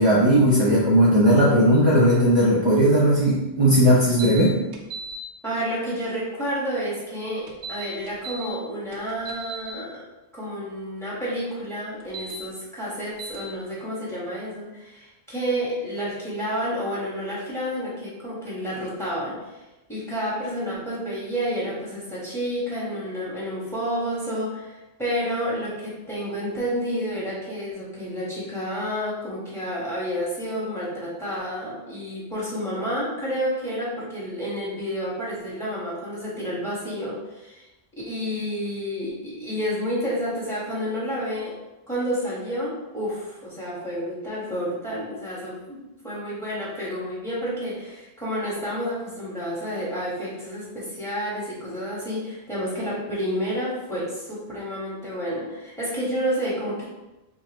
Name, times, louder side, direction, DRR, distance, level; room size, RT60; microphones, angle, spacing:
voice 1, 0.0-4.6, equal, 30° right, -6 dB, 0.6 m, -17 dB
sound 1, 4.2-4.4 4.7-5.1 7.5-8.4 8.9-9.7 12.0-12.3 13.2-13.4, right 4 dB, 80° right, 0.9 m, -36 dB
voice 2, 5.4-10.0 10.3-19.6 19.9-37.7 38.1-41.5 41.9-45.8 46.0-56.8, equal, ahead, -8 dB, 1.3 m, -30 dB
4.8 x 2.3 x 3.0 m, 1.0 s
omnidirectional pair, 1.1 m